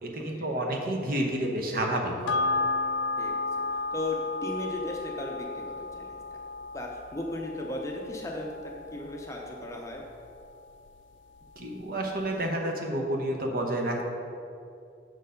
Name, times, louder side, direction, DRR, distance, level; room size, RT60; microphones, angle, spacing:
voice 1, 0.0-2.3 11.6-14.0, right 1 dB, 50° right, 1 dB, 0.8 m, -30 dB
sound 1, 2.3-11.0 11.4-11.5, left 3 dB, 80° left, 0.4 m, -34 dB
voice 2, 3.9-6.2 6.7-8.5 8.9-10.0, left 2 dB, 15° left, 0 dB, 0.6 m, -35 dB
6.3 x 4.5 x 5.2 m, 2.6 s
head